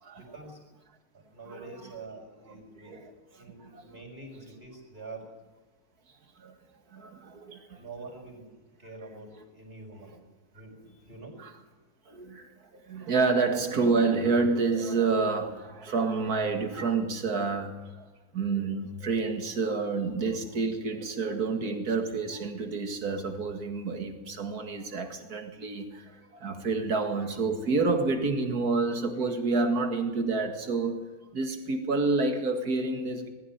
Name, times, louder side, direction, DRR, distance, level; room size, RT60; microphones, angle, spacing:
voice 1, 0.2-0.6 1.1-3.0 3.4-5.3 7.7-10.2 10.5-11.4, right 3 dB, 35° right, 5.5 m, -46 dB
voice 2, 6.9-7.8 11.4-11.5 12.1-18.0 18.3-31.1 31.3-33.3, right 4 dB, 90° right, 2.5 m, -29 dB
20.5 x 14.5 x 9.2 m
omnidirectional pair, 1.6 m